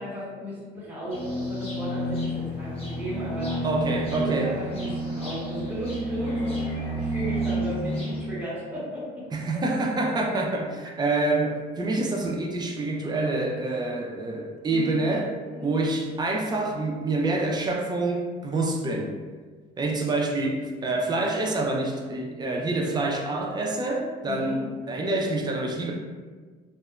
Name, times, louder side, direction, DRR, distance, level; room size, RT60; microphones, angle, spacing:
voice 1, 0.0-9.2 10.7-10.8 14.6-14.9 15.4-15.7 24.2-24.6, equal, 10° right, -8 dB, 1.0 m, -35 dB
sound 1, 1.1-8.2, equal, 35° left, 0.9 m, -30 dB
voice 2, 3.6-4.5 9.3-15.3 15.6-19.1 19.8-25.9, right 2 dB, 25° right, 1 dB, 0.4 m, -27 dB
2.8 x 2.1 x 2.3 m, 1.4 s
cardioid pair, 110°, 17 cm